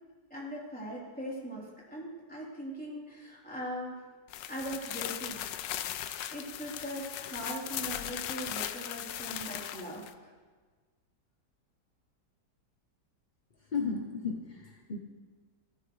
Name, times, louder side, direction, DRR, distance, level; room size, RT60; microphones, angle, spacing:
voice 1, 0.3-4.0 4.5-5.7 6.3-10.3, equal, 5° left, -7 dB, 3.5 m, -40 dB
sound 1, 4.3-10.1, left 11 dB, 90° left, 1.2 m, -38 dB
voice 2, 13.6-15.0, left 5 dB, 45° left, 2 dB, 0.6 m, -34 dB
15.5 x 14.0 x 3.2 m, 1.4 s
omnidirectional pair, 1.9 m